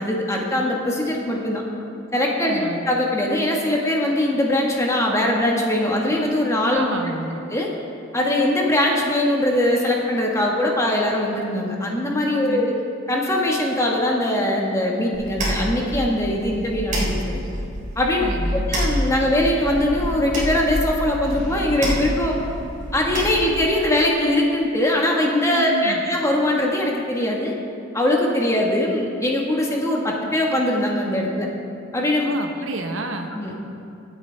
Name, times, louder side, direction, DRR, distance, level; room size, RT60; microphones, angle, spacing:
voice 1, 0.0-1.6 2.1-6.8 7.5-7.7 8.1-12.7 13.1-17.4 17.9-18.2 18.7-22.4 22.9-27.5 27.9-31.5 31.9-32.3 33.3-33.5, left 1 dB, 15° left, -1 dB, 1.5 m, -21 dB
voice 2, 2.4-2.9 6.7-7.4 12.4-12.7 18.2-18.7 25.5-26.0 32.2-33.3, right 2 dB, 75° right, 4 dB, 1.1 m, -30 dB
sound 1, 15.1-23.7, equal, 40° right, 3.6 m, -28 dB
24.0 x 8.4 x 3.5 m, 2.7 s
head